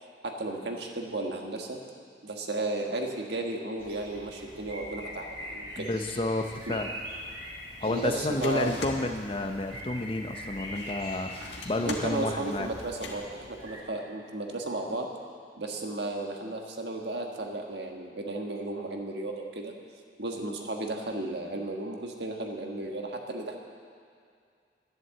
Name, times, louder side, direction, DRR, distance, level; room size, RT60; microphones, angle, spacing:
voice 1, 0.2-1.8 2.2-5.9 6.7-6.8 7.9-8.8 11.8-15.1 15.6-19.7 20.2-23.6, right 2 dB, 65° right, 1 dB, 1.5 m, -34 dB
sound 1, 3.8-13.8, equal, 30° right, 2.2 m, -43 dB
voice 2, 5.8-6.9 7.8-12.7, left 2 dB, 30° left, 5 dB, 0.8 m, -31 dB
sound 2, 6.4-13.1, left 3 dB, 70° left, 1.5 m, -44 dB
11.0 x 11.0 x 7.6 m, 2.3 s
head